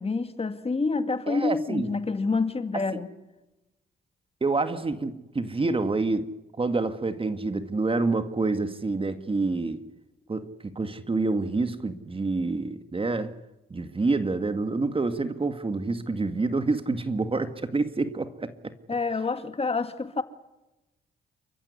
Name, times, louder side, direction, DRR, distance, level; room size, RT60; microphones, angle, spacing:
voice 1, 0.0-3.1 18.9-20.2, left 4 dB, 35° left, 2.3 m, -27 dB
voice 2, 1.3-1.9 2.7-2.8 4.4-6.3 6.6-9.8 10.3-13.4 13.7-18.7, right 3 dB, 30° right, 2.1 m, -27 dB
29.5 x 14.5 x 9.7 m
cardioid pair, 65°, 18 cm